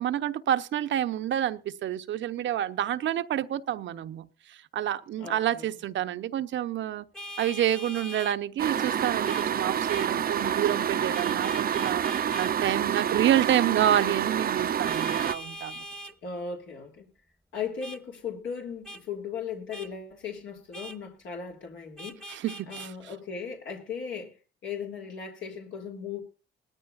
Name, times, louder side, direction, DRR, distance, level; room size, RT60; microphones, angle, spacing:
voice 1, 0.0-7.1 7.4-15.8 22.3-22.9, right 11 dB, 70° right, 0.9 m, -28 dB
voice 2, 5.2-5.8 16.2-17.1 17.5-22.2 22.7-24.3 24.6-26.2, left 6 dB, 70° left, 3.2 m, -37 dB
Vehicle horn car horn honking, 7.1-8.4 9.3-9.5 9.9-10.1 11.1-12.5 14.9-16.1 17.8-18.0 18.9-19.0 19.7-19.9 20.7-21.0 22.0-22.9, equal, 5° left, 1.2 m, -41 dB
sound 1, 8.6-15.3, right 9 dB, 50° right, 0.7 m, -28 dB
19.5 x 14.0 x 2.6 m
cardioid pair, 90°, 20 cm